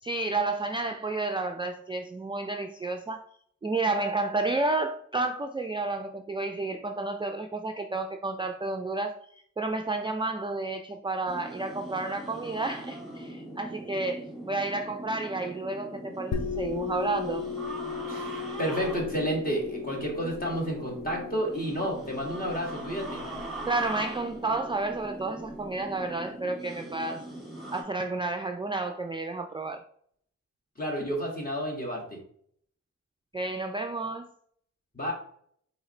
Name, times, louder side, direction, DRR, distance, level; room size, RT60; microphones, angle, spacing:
voice 1, 0.0-3.3 3.6-17.5 23.7-27.2 27.7-29.8 33.3-34.3, right 3 dB, 15° right, 4 dB, 0.3 m, -31 dB
sound 1, 11.3-27.8, right 1 dB, ahead, 1.8 m, -41 dB
sound 2, 16.3-25.7, left 6 dB, 60° left, 0.5 m, -38 dB
voice 2, 18.1-23.2 30.8-32.2 34.9-35.1, equal, 30° left, -2 dB, 1.8 m, -31 dB
4.7 x 3.3 x 3.2 m, 0.63 s
cardioid pair, 65°, 31 cm